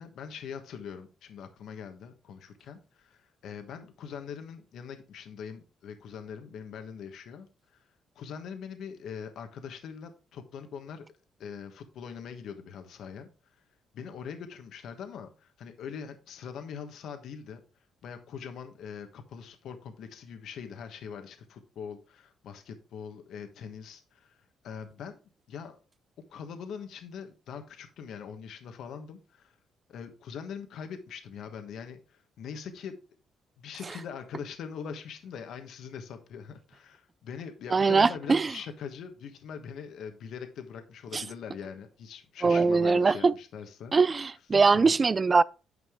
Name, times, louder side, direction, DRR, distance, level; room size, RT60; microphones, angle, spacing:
voice 1, 0.0-7.5 7.7-7.8 8.1-11.0 11.4-13.3 13.9-17.6 18.0-24.4 24.6-25.2 25.5-25.8 26.3-29.6 29.9-32.9 33.6-43.9 44.5-45.0, left 7 dB, 75° left, 1.3 m, -42 dB
voice 2, 37.7-38.5 41.1-41.2 42.4-43.3 43.9-45.4, right 4 dB, 30° right, 0.4 m, -22 dB
9.6 x 5.4 x 3.7 m
cardioid pair, 90°, 0 cm